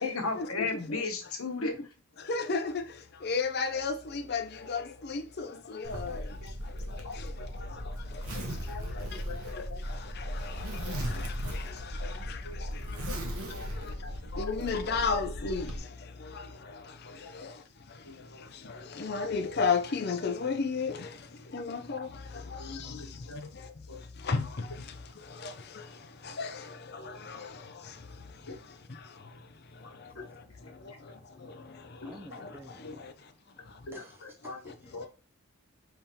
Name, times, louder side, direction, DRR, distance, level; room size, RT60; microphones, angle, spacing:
voice 1, 0.0-1.7 6.0-6.5 6.8-7.2 7.5-7.8 8.7-9.4 9.7-9.8 10.8-11.2 11.7-12.1 12.4-12.8 13.1-13.2 13.5-14.5 17.2-17.3 18.0-18.2 22.6-23.4 23.9-24.0 28.5-28.6 32.0-32.4 32.8-33.0 33.9-34.6 34.9-35.1, left 4 dB, 80° left, 1.1 m, -39 dB
voice 2, 2.3-2.7 3.2-4.4 4.7-4.8 5.4-5.5 5.9-6.1 14.4-15.6 19.0-20.9 21.5-22.1 24.3-24.4 26.4-26.5, left 4 dB, 45° left, 0.5 m, -30 dB
Zipper (clothing), 5.8-15.8, equal, 80° right, 1.1 m, -37 dB
voice 3, 32.0-32.9 33.9-35.1, equal, 10° right, 0.6 m, -51 dB
5.4 x 3.4 x 2.9 m
head